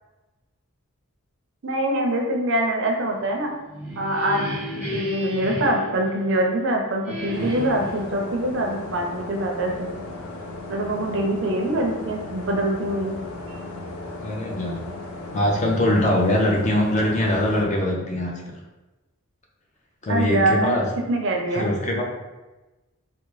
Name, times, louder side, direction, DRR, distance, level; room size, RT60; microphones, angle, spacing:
voice 1, 1.6-3.5 4.0-9.9 10.7-13.1 20.1-20.8 21.1-21.7, right 1 dB, 55° right, 1 dB, 0.5 m, -24 dB
sound 1, 3.5-6.6 7.0-8.0, equal, 5° right, 0.7 m, -31 dB
sound 2, 7.3-17.6, left 2 dB, 85° left, 0.5 m, -36 dB
voice 2, 14.2-14.8 15.3-18.3 20.0-20.9 21.5-22.0, left 1 dB, 35° left, -1 dB, 0.5 m, -22 dB
3.7 x 2.0 x 3.1 m, 1.1 s
head